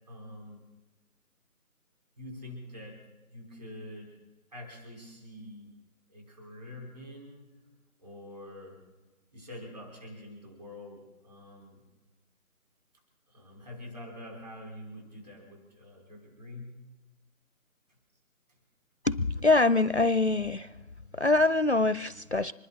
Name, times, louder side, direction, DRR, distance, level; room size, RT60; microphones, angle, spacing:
voice 1, 0.1-0.6 2.2-4.2 4.5-5.7 6.1-7.6 8.0-8.8 9.3-11.8 13.3-16.8, left 1 dB, 30° right, -1 dB, 5.6 m, -46 dB
voice 2, 19.0-20.8 21.1-22.5, left 3 dB, 50° left, 15 dB, 0.4 m, -24 dB
25.5 x 11.0 x 4.4 m, 1.1 s
figure-of-eight pair, 180°, 43 cm